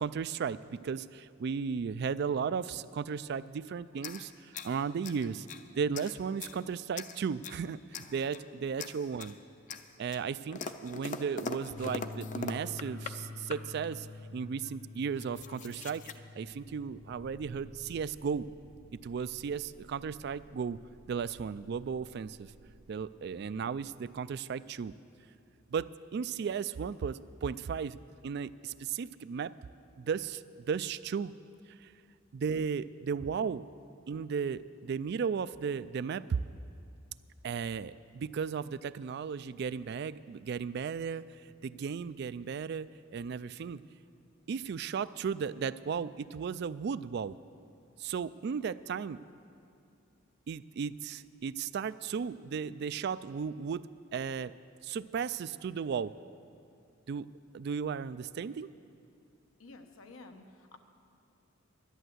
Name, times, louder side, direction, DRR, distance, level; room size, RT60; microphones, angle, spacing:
voice 1, 0.0-5.5 5.7-9.4 10.0-14.1 14.3-16.0 16.4-18.5 18.9-20.8 21.1-22.5 22.9-24.9 25.7-28.0 28.2-29.5 30.0-31.3 31.8-31.9 32.3-33.7 34.1-36.4 37.4-41.2 41.6-43.8 44.5-47.4 48.0-49.2 50.5-53.8 54.1-54.5 54.8-56.1 57.1-57.3 57.5-58.7, right 6 dB, 55° right, 16 dB, 0.3 m, -35 dB
sound 1, 3.9-5.6 5.9-6.6 6.9-7.6 7.9-8.5 8.8-9.4 9.7-13.2 13.5-13.9 14.6-14.7 14.9-16.2, left 4 dB, 40° left, 0.5 m, -42 dB
Bass guitar, 11.7-18.0, left 3 dB, 65° left, 1.0 m, -47 dB
sound 2, 16.5-24.3, right 1 dB, 90° right, 0.8 m, -58 dB
voice 2, 59.6-60.8, left 3 dB, 85° left, 5 dB, 1.1 m, -52 dB
11.5 x 11.0 x 7.9 m, 2.4 s
head